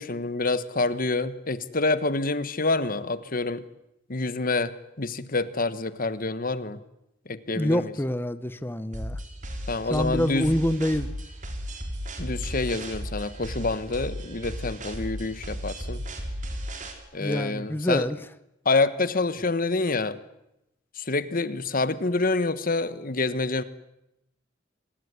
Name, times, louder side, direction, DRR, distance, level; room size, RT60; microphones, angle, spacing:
voice 1, 0.0-3.6 4.1-6.8 7.3-7.9 9.7-10.5 12.2-16.0 17.1-18.1 18.6-20.2 21.0-23.6, left 3 dB, 50° left, 14 dB, 1.4 m, -27 dB
voice 2, 7.5-9.2 9.9-11.1 17.2-18.2, left 1 dB, 10° left, 14 dB, 0.8 m, -26 dB
sound 1, 8.9-16.9, equal, 45° right, 4.2 m, -35 dB
25.5 x 19.5 x 9.7 m, 0.89 s
head